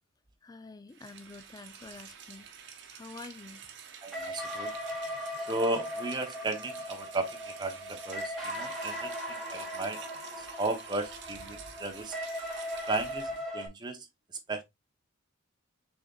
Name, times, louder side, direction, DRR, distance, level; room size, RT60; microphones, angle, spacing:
voice 1, 0.4-3.6, left 3 dB, 20° left, 0.3 m, -48 dB
Rain, 0.9-13.5, right 7 dB, 55° right, 0.9 m, -49 dB
voice 2, 4.0-4.7 5.5-10.0 10.4-12.1 12.9-14.1 14.5-14.6, right 2 dB, 20° right, 0.7 m, -35 dB
sound 1, 4.1-13.7, equal, ahead, 2.2 m, -38 dB
6.4 x 3.6 x 2.3 m
head